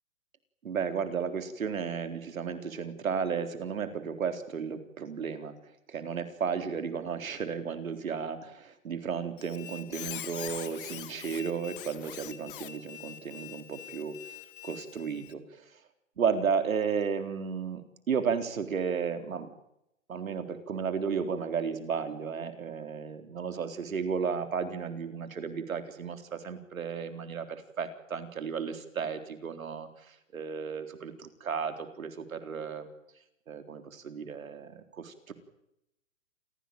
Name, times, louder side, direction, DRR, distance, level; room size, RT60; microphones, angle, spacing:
voice 1, 0.6-5.5 5.9-14.2 14.6-15.7 16.2-17.8 18.1-19.5 20.1-32.9 33.5-35.3, right 6 dB, 80° right, 8 dB, 4.0 m, -33 dB
Squeak, 9.4-15.3, left 13 dB, 40° left, 1.6 m, -44 dB
28.0 x 17.0 x 9.1 m, 0.83 s
hypercardioid pair, 155°, 41 cm